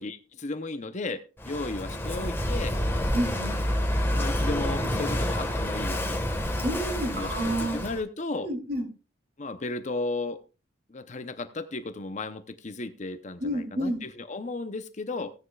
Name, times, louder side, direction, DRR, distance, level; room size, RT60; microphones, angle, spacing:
voice 1, 0.0-2.8 4.1-6.2 7.0-8.5 9.4-10.4 10.9-15.3, left 2 dB, 35° left, 10 dB, 0.7 m, -34 dB
Walk footsteps / Wind / Waves surf, 1.4-8.0, left 1 dB, 10° left, 1.4 m, -28 dB
voice 2, 3.1-3.6 6.6-7.8 8.4-8.8 13.4-14.0, right 1 dB, 50° right, 3 dB, 3.0 m, -29 dB
16.0 x 9.8 x 2.4 m, 0.34 s
head